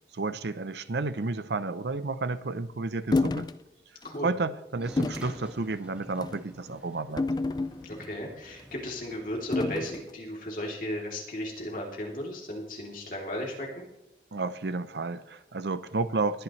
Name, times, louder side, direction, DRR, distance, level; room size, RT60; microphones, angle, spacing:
voice 1, 0.1-3.5 4.2-7.3 14.3-16.4, right 3 dB, 75° right, 0.7 m, -31 dB
sound 1, 3.1-3.6 4.0-4.2 5.0-5.3 6.1-6.4 7.2-8.1 9.5-10.0, left 3 dB, 25° left, 0.3 m, -29 dB
sound 2, 4.8-9.8, equal, 5° right, 1.4 m, -49 dB
voice 2, 7.8-13.8, equal, 50° left, 3.1 m, -35 dB
21.0 x 10.5 x 3.2 m
head